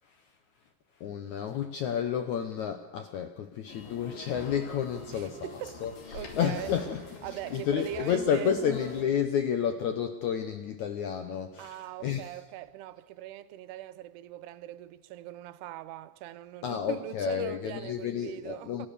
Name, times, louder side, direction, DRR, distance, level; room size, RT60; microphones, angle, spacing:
voice 1, 0.0-0.3 0.9-5.5 5.8-12.4 16.6-18.9, left 8 dB, 80° left, 1.7 m, -31 dB
sound 1, 3.7-9.1, left 4 dB, 60° left, 4.1 m, -45 dB
voice 2, 5.1-5.8 6.1-6.7 7.2-8.5 11.6-18.9, right 14 dB, 80° right, 2.8 m, -41 dB
28.0 x 14.0 x 6.8 m
omnidirectional pair, 4.7 m